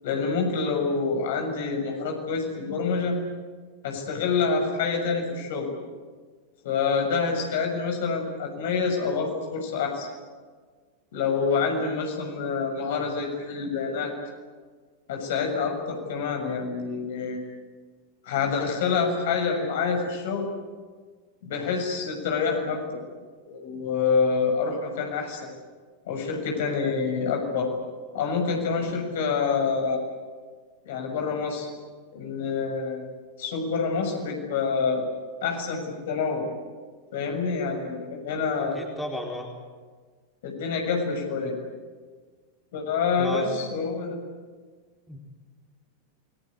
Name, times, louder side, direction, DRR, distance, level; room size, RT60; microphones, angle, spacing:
voice 1, 0.0-3.2 3.8-5.7 6.6-10.1 11.1-14.1 15.1-17.4 18.2-20.5 21.4-23.0 23.5-25.5 26.0-27.7 28.1-30.0 30.8-31.7 32.1-33.1 33.4-35.0 35.4-36.5 37.1-38.8 40.4-41.6 42.7-44.2, left 5 dB, 55° left, 3 dB, 6.7 m, -27 dB
voice 2, 38.6-39.5 43.2-43.6 45.1-45.2, left 1 dB, 5° left, 0 dB, 4.3 m, -33 dB
28.5 x 22.0 x 8.6 m, 1.5 s
figure-of-eight pair, 90°, 0 cm